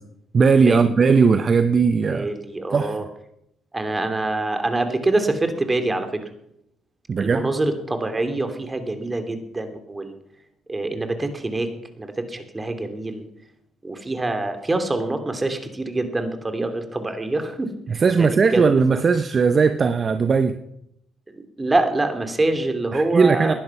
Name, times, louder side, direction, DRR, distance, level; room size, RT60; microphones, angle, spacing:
voice 1, 0.3-2.3 2.7-3.0 7.1-7.5 17.9-20.6 22.9-23.5, right 5 dB, 45° right, 10 dB, 0.9 m, -18 dB
voice 2, 2.1-3.1 3.7-6.2 7.2-10.1 10.7-11.7 12.0-13.2 13.8-18.8 21.3-23.5, right 2 dB, 25° right, 7 dB, 2.9 m, -25 dB
19.5 x 11.0 x 5.8 m, 0.79 s
hypercardioid pair, 55°, 0 cm